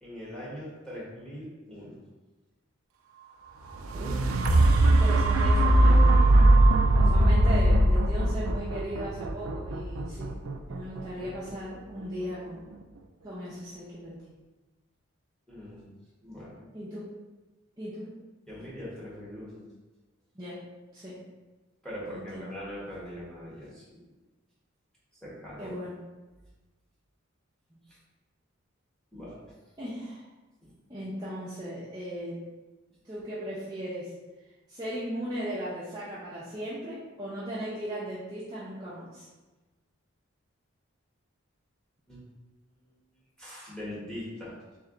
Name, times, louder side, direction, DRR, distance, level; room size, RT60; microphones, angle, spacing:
voice 1, 0.0-2.0 15.5-15.9 16.2-16.7 18.5-19.6 21.8-24.0 25.2-25.8 27.9-28.0 29.1-29.5 30.6-30.7 42.1-42.3 42.8-43.0 43.4-44.5, equal, 5° left, -7 dB, 1.3 m, -41 dB
sound 1, 3.7-11.7 12.3-12.4, right 1 dB, 85° right, 0.4 m, -21 dB
voice 2, 4.8-6.2 6.9-10.3 10.7-12.7 13.2-14.2 16.7-17.0 17.8-18.1 20.3-20.5 20.9-21.1 22.1-22.5 25.6-25.9 27.7-27.8 29.8-30.3 30.9-32.4 33.0-34.1 34.7-39.3, equal, 20° right, -10 dB, 0.7 m, -37 dB
3.3 x 3.3 x 3.8 m, 1.2 s
head